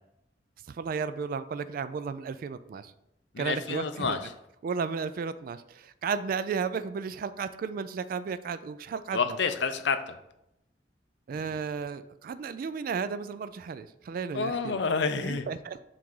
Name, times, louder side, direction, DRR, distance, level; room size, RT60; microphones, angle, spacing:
voice 1, 0.7-2.9 3.4-4.2 4.6-9.4 11.3-14.8 15.2-15.8, right 5 dB, 50° right, 12 dB, 0.3 m, -34 dB
voice 2, 3.3-4.2 9.1-10.2 14.3-15.5, left 5 dB, 70° left, 9 dB, 0.6 m, -29 dB
7.4 x 2.5 x 5.4 m, 0.85 s
head